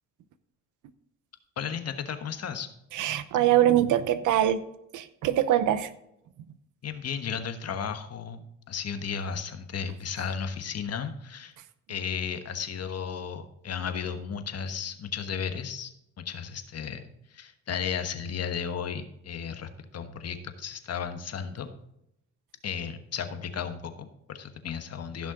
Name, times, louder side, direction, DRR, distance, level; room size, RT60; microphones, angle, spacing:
voice 1, 1.6-2.7 6.8-11.5 11.9-21.7 22.6-25.3, left 7 dB, 55° left, 8 dB, 1.3 m, -34 dB
voice 2, 2.9-4.6 4.9-5.9, right 12 dB, 85° right, 13 dB, 0.8 m, -23 dB
15.5 x 6.2 x 3.8 m, 0.80 s
cardioid pair, 90°, 30 cm